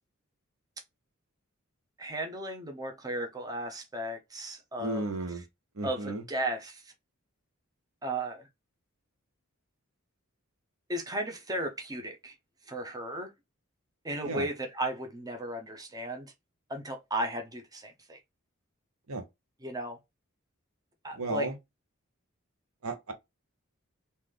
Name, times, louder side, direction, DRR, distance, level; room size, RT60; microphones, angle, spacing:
voice 1, 2.0-5.1 5.8-6.9 8.0-8.5 10.9-12.3 12.7-13.3 14.0-16.3 16.7-18.2 19.6-20.0 21.0-21.5, right 1 dB, 20° right, 0.8 m, -35 dB
voice 2, 4.8-5.4 5.7-6.2 14.2-14.5 19.1-19.2 21.1-21.6 22.8-23.1, right 2 dB, 85° right, 1.0 m, -34 dB
3.9 x 2.7 x 3.1 m
head